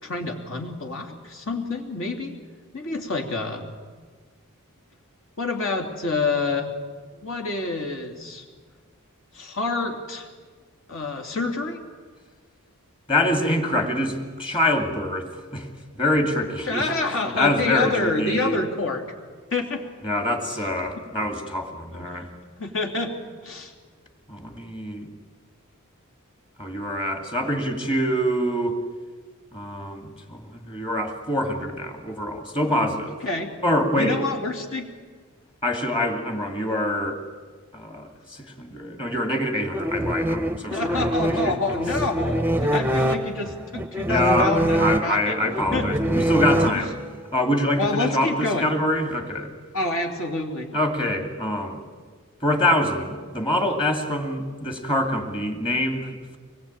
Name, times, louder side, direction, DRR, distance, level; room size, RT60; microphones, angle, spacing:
voice 1, 0.0-2.4 2.7-3.7 5.4-6.7 7.2-8.4 9.3-10.3 10.9-11.8 16.7-19.0 19.5-19.9 21.9-22.3 22.6-23.1 23.4-23.7 33.2-33.5 33.9-34.9 40.7-45.4 45.7-45.9 46.7-46.8 47.7-48.7 49.7-50.7, left 3 dB, 65° left, 3 dB, 3.1 m, -27 dB
voice 2, 13.1-15.7 15.9-16.9 17.4-18.6 20.0-22.3 24.3-25.1 26.6-28.8 29.5-33.2 33.6-34.2 35.6-37.2 37.7-41.6 44.1-46.9 47.3-49.5 50.7-51.8 52.4-56.4, left 1 dB, 25° left, 4 dB, 2.5 m, -25 dB
sound 1, 39.7-47.2, equal, 10° right, 0.7 m, -24 dB
24.0 x 20.5 x 9.0 m, 1.6 s
head